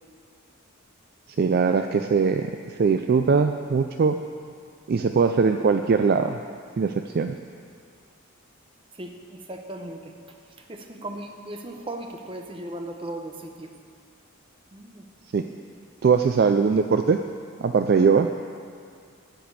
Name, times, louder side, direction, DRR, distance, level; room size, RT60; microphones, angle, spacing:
voice 1, 1.4-2.5 2.8-4.2 4.9-6.4 6.8-7.3 15.3-15.4 16.0-17.2 17.6-18.3, right 5 dB, 45° right, 7 dB, 0.3 m, -21 dB
voice 2, 8.9-10.1 10.7-13.7 14.7-15.1 16.3-16.4, right 1 dB, 25° right, 3 dB, 0.8 m, -37 dB
13.0 x 5.1 x 8.9 m, 2.3 s
head